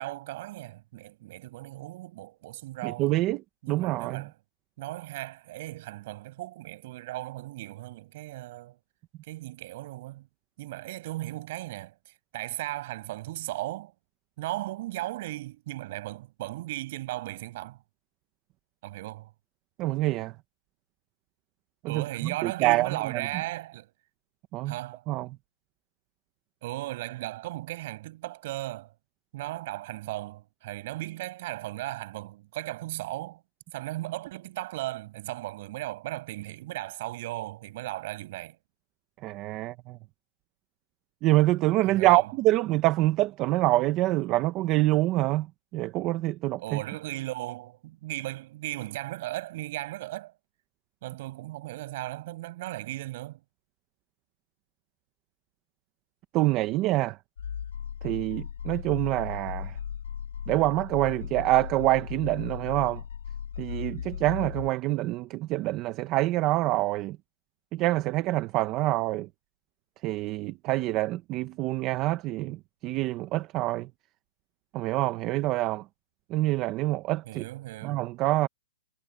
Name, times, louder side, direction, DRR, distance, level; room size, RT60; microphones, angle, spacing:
voice 1, 0.0-3.2 3.6-4.4 4.8-8.8 9.3-10.3 10.6-13.9 14.4-17.8 18.8-19.3 21.9-23.9 24.7-25.1 26.6-28.9 29.3-33.4 33.7-38.6 41.8-42.3 46.6-50.3 51.0-53.4 77.2-78.1, right 17 dB, 35° right, 7.5 m, -36 dB
voice 2, 2.8-3.4 3.7-4.2 19.8-20.3 21.8-22.0 22.4-22.9 24.5-24.7 25.1-25.3 39.2-40.0 41.2-45.5 45.7-46.8 56.3-57.2 58.0-59.7 60.5-63.0 63.6-67.2 67.7-69.3 70.0-72.6 72.8-73.9 74.7-75.8 76.3-77.4 77.8-78.5, right 17 dB, 20° right, 0.9 m, -26 dB
sound 1, 57.4-64.7, left 8 dB, 80° left, 4.0 m, -37 dB
hypercardioid pair, 165°, 0 cm